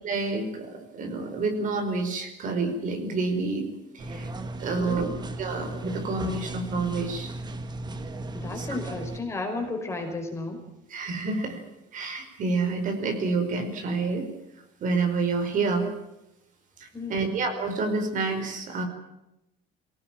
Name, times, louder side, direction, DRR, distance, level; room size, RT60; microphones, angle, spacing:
voice 1, 0.0-3.7 3.9-4.3 4.6-5.1 5.4-7.3 8.6-8.7 10.9-11.6 11.9-14.3 14.8-15.9 16.8-18.8, right 3 dB, 45° right, 5 dB, 5.1 m, -28 dB
sound 1, 4.0-9.2, right 2 dB, 25° right, 2.0 m, -36 dB
voice 2, 4.7-5.3 8.3-10.6 16.9-17.4, left 2 dB, 15° left, 3 dB, 5.2 m, -33 dB
23.5 x 18.5 x 9.1 m, 0.87 s
cardioid pair, 150°, 19 cm